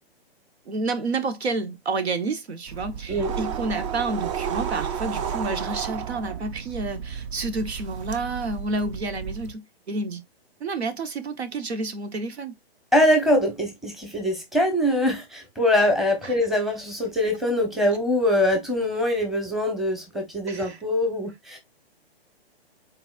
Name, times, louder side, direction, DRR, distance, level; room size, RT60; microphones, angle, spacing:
voice 1, 0.7-10.2 10.6-12.5 20.5-20.8, right 3 dB, 85° right, 1.1 m, -30 dB
sound 1, 2.7-9.5, right 7 dB, 30° right, 0.4 m, -32 dB
voice 2, 12.9-21.6, left 1 dB, ahead, 0.9 m, -23 dB
4.1 x 4.0 x 2.4 m
hypercardioid pair, 140°, 31 cm